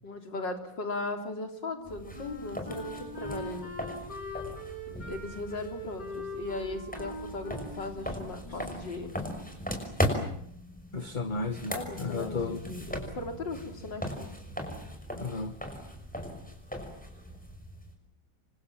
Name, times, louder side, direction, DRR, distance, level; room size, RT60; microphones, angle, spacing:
voice 1, 0.0-3.7 4.9-9.1 11.7-14.3, left 2 dB, 80° left, 5 dB, 4.4 m, -38 dB
Wind instrument woodwind instrument, 1.7-9.0, left 1 dB, 65° left, 7.9 m, -42 dB
sound 1, 1.9-17.9, equal, 5° left, 5.9 m, -38 dB
voice 2, 10.9-12.7 15.2-15.6, left 3 dB, 30° left, 9 dB, 1.3 m, -34 dB
28.0 x 25.5 x 7.4 m, 0.70 s
omnidirectional pair, 1.9 m